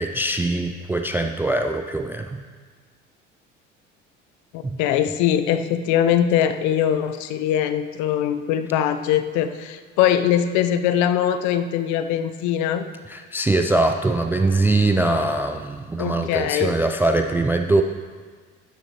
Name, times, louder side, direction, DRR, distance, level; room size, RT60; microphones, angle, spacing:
voice 1, 0.0-2.4 4.6-4.8 13.1-17.8, right 2 dB, 5° right, 5 dB, 0.3 m, -22 dB
voice 2, 4.5-12.9 16.0-16.7, left 10 dB, 50° left, 10 dB, 0.7 m, -22 dB
12.5 x 10.0 x 3.0 m, 1.5 s
figure-of-eight pair, 65°, 37 cm